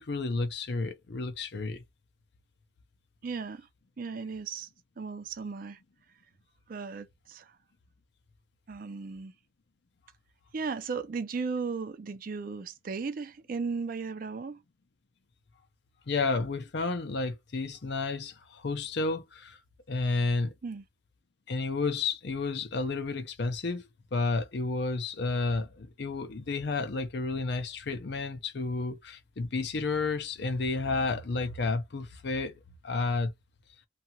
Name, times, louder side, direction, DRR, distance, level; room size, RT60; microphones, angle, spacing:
voice 1, 0.0-1.8 16.1-19.6 19.9-20.5 21.5-33.3, left 3 dB, 55° left, 0.6 m, -31 dB
voice 2, 3.2-3.7 4.0-4.7 5.0-5.8 6.7-7.5 8.7-9.3 10.5-14.6 20.6-20.8, right 4 dB, 45° right, 0.4 m, -36 dB
2.8 x 2.3 x 2.8 m
head